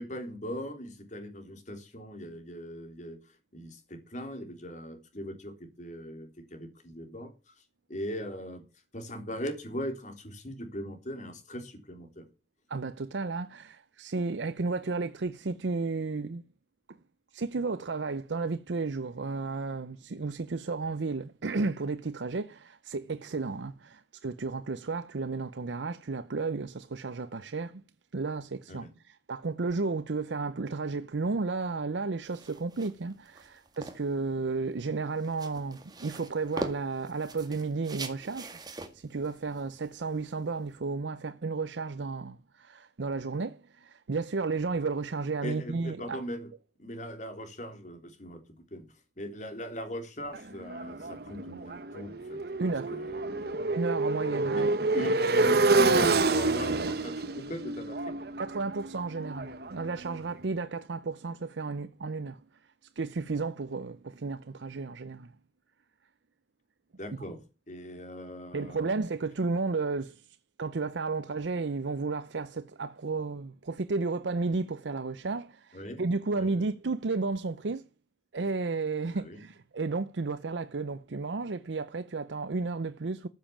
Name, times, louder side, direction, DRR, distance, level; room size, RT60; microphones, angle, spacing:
voice 1, 0.0-3.2 3.5-7.3 7.9-8.6 8.9-12.3 28.7-28.9 45.4-46.5 46.8-48.4 48.7-48.9 49.2-52.4 52.6-53.6 54.5-54.6 54.9-55.2 55.5-58.2 67.0-68.9 75.7-76.0 76.3-76.5 79.1-79.4, equal, 40° left, 3.4 m, -40 dB
voice 2, 12.7-16.4 17.3-27.8 28.1-38.6 38.9-46.2 52.6-52.9 53.7-54.7 55.0-55.3 58.4-62.4 63.0-65.3 68.5-70.2 70.6-77.9 78.3-83.3, right 3 dB, 80° right, 0.6 m, -33 dB
sound 1, 32.2-40.8, right 2 dB, 20° right, 1.9 m, -43 dB
Motorcycle, 50.3-60.2, right 3 dB, 60° right, 1.1 m, -28 dB
14.0 x 7.4 x 7.2 m
head